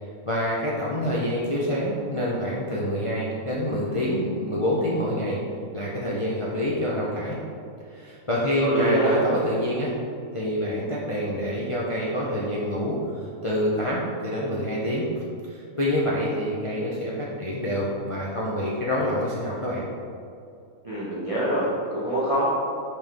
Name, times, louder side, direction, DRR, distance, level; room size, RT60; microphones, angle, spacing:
voice 1, 0.3-5.4 5.7-7.4 7.9-9.9 10.3-13.1 13.4-15.1 15.5-19.9, equal, 35° left, -6 dB, 0.5 m, -26 dB
voice 2, 8.6-9.2 20.8-22.4, right 1 dB, 25° right, -9 dB, 1.2 m, -25 dB
5.5 x 5.5 x 3.5 m, 2.4 s
omnidirectional pair, 1.5 m